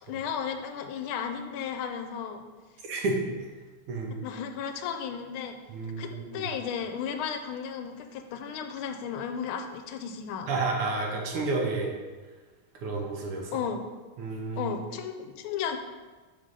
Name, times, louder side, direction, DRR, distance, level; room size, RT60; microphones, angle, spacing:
voice 1, 0.0-2.4 4.2-5.6 6.0-10.5 13.5-13.9 14.6-15.8, left 7 dB, 80° left, 6 dB, 1.4 m, -34 dB
voice 2, 2.8-3.5 3.9-4.2 5.7-6.5 10.5-11.9 12.7-13.6 14.2-14.8, right 3 dB, 85° right, 0 dB, 1.9 m, -31 dB
5.0 x 3.8 x 5.4 m, 1.3 s
omnidirectional pair, 2.4 m